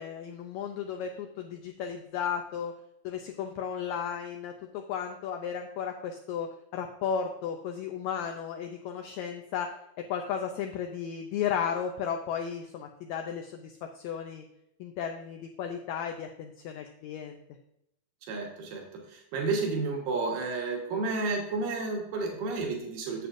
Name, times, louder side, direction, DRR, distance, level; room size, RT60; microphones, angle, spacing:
voice 1, 0.0-2.7 3.0-14.4 14.8-17.4, left 7 dB, 85° left, 4 dB, 1.6 m, -34 dB
voice 2, 18.3-23.3, right 3 dB, 85° right, 0 dB, 3.0 m, -31 dB
9.0 x 7.5 x 2.5 m, 0.81 s
omnidirectional pair, 3.8 m